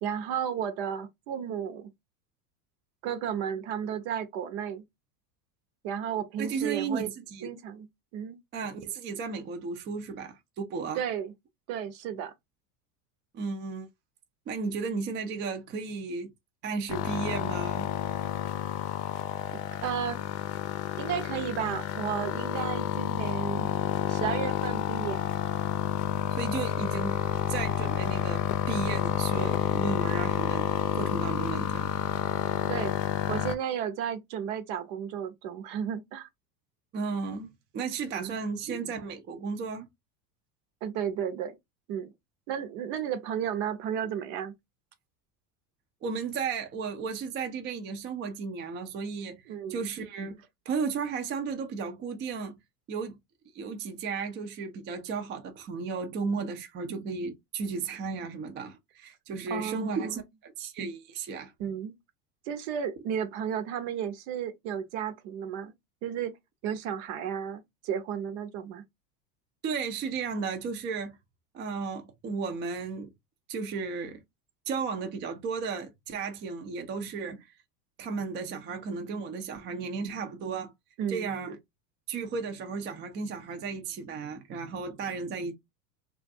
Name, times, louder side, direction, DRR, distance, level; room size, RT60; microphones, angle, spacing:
voice 1, 0.0-1.9 3.0-4.8 5.8-7.1 7.4-7.9 8.1-8.4 11.0-11.3 11.7-12.3 19.8-20.3 21.0-23.7 24.1-25.3 32.6-32.9 33.3-36.3 38.1-38.3 40.8-41.6 41.9-42.1 42.5-44.5 49.5-49.8 59.5-60.1 61.6-61.9 62.4-65.7 66.0-66.3 66.6-68.8 81.0-81.4, right 8 dB, 60° right, 0.8 m, -33 dB
voice 2, 6.4-7.5 8.5-11.0 13.3-13.9 14.5-16.3 16.6-17.9 26.3-27.2 27.5-30.7 30.9-31.9 36.9-39.9 46.0-50.4 50.7-52.5 52.9-53.2 53.5-61.5 69.6-71.2 71.5-73.1 73.5-74.2 74.7-77.5 78.0-80.7 81.1-81.6 82.1-85.5, right 5 dB, 25° right, 0.4 m, -34 dB
sound 1, 16.9-33.5, left 11 dB, 70° left, 0.6 m, -30 dB
2.5 x 2.4 x 2.5 m
hypercardioid pair, 95°, 49 cm